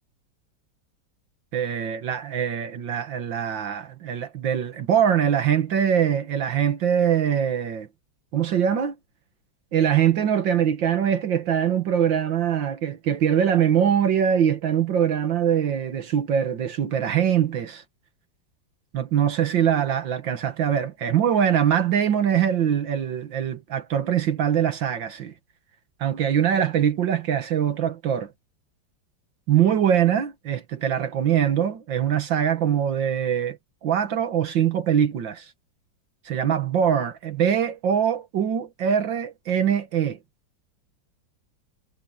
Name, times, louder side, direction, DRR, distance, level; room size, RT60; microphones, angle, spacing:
voice 1, 1.5-7.9 8.3-9.0 9.7-17.8 18.9-25.3 26.0-28.3 29.5-35.5 36.3-40.2, right 9 dB, 75° right, 2.0 m, -23 dB
omnidirectional pair, 2.1 m